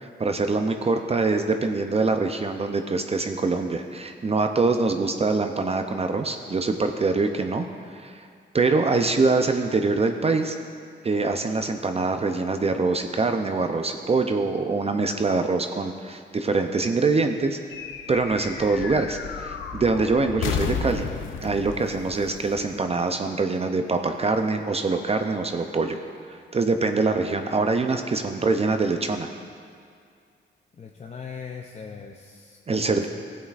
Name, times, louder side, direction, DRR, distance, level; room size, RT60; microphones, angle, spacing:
voice 1, 0.0-7.7 7.9-8.3 8.5-10.6 11.0-17.6 18.1-21.1 21.4-26.0 26.3-29.3 32.7-33.1, right 3 dB, 30° right, 6 dB, 0.5 m, -24 dB
sound 1, 17.7-23.4, left 7 dB, 90° left, 0.5 m, -33 dB
voice 2, 30.8-33.1, left 6 dB, 35° left, 2 dB, 0.5 m, -40 dB
14.5 x 8.5 x 2.5 m, 2.2 s
cardioid pair, 80°, 20 cm